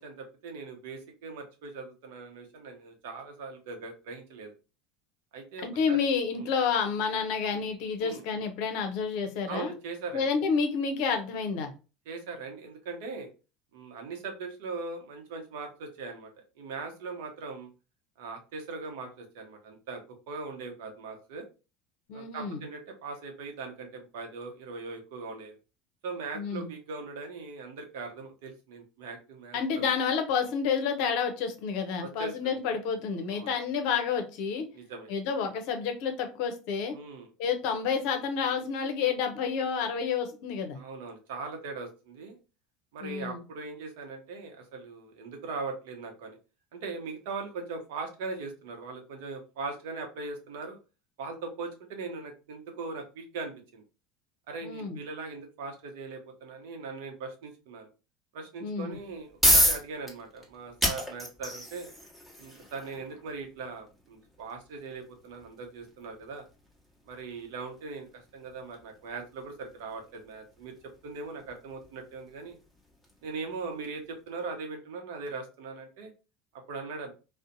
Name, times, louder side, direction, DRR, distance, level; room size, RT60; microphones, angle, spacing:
voice 1, 0.0-4.5 5.3-6.0 6.3-6.5 8.0-8.2 9.5-10.3 12.1-13.3 13.7-16.3 16.6-17.7 18.2-20.0 20.3-21.4 22.1-25.6 26.0-29.9 32.0-32.6 33.3-33.6 34.7-35.1 36.9-37.3 40.7-42.4 42.9-46.4 46.7-50.8 51.2-53.8 54.5-57.9 58.3-61.9 62.4-66.4 67.1-68.1 68.3-70.7 71.0-72.6 73.2-76.1 76.5-77.1, right 4 dB, 70° right, 3 dB, 0.7 m, -40 dB
voice 2, 5.6-9.7 10.1-11.7 22.1-22.6 26.3-26.7 29.5-34.6 35.1-36.9 37.4-40.8 43.0-43.4 54.6-55.0 58.6-59.0, left 6 dB, 65° left, 6 dB, 0.6 m, -29 dB
sound 1, 58.9-73.8, equal, 5° right, 1.1 m, -33 dB
2.6 x 2.1 x 2.5 m, 0.32 s
hypercardioid pair, 80°, 0 cm